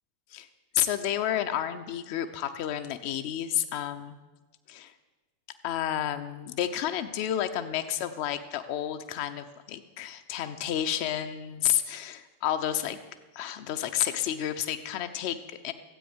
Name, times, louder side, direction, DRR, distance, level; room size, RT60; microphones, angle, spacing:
voice 1, 0.7-4.2 4.7-4.9 5.6-13.0 13.3-15.7, left 11 dB, 45° left, 9 dB, 0.9 m, -30 dB
12.5 x 8.6 x 6.4 m, 1.2 s
figure-of-eight pair, 90°, 0 cm